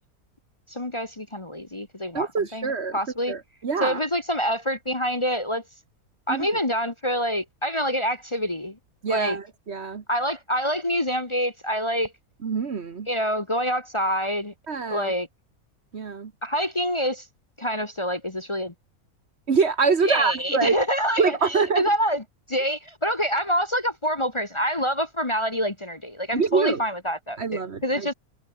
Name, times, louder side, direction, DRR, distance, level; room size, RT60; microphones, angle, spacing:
voice 1, 0.7-3.3 3.8-5.6 6.3-8.8 9.1-9.4 10.1-12.1 13.1-14.5 14.9-15.3 16.4-17.3 17.6-18.7 20.0-22.2 22.5-28.1, equal, 20° left, 1.3 m, -26 dB
voice 2, 2.1-3.0 3.3-4.0 6.3-6.5 9.0-10.0 12.4-13.1 14.7-15.1 15.9-16.3 19.5-20.8 21.2-21.8 26.3-26.8 27.4-28.1, right 5 dB, 50° right, 1.5 m, -25 dB
omnidirectional pair, 1.5 m